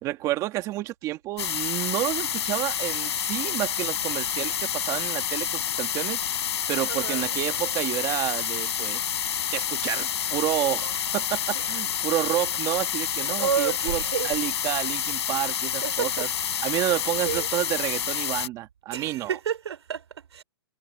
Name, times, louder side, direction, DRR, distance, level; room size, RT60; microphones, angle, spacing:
voice 1, 0.0-6.2 6.7-9.1 9.5-16.3 16.6-19.4, right 16 dB, 25° right, 2.3 m, -30 dB
sound 1, 1.4-18.5, left 9 dB, 75° left, 7.0 m, -28 dB
voice 2, 6.9-7.4 11.5-11.7 13.2-14.3 15.8-16.1 16.5-16.7 17.3-17.5 18.9-20.4, right 8 dB, 85° right, 6.0 m, -30 dB
hypercardioid pair, 155°, 14 cm